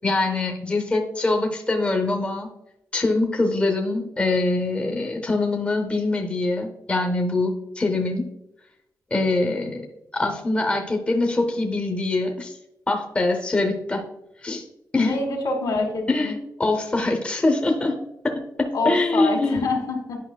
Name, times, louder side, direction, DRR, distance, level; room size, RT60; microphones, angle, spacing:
voice 1, 0.0-2.5 2.9-8.3 9.1-9.8 10.1-12.5 12.9-14.0 14.4-14.7 14.9-15.2 16.1-18.0 18.2-19.7, left 2 dB, 15° left, 2 dB, 0.6 m, -23 dB
voice 2, 15.0-16.3 18.7-20.2, left 3 dB, 80° left, 2 dB, 1.6 m, -26 dB
9.3 x 5.4 x 2.2 m, 0.85 s
wide cardioid pair, 155°, 7 cm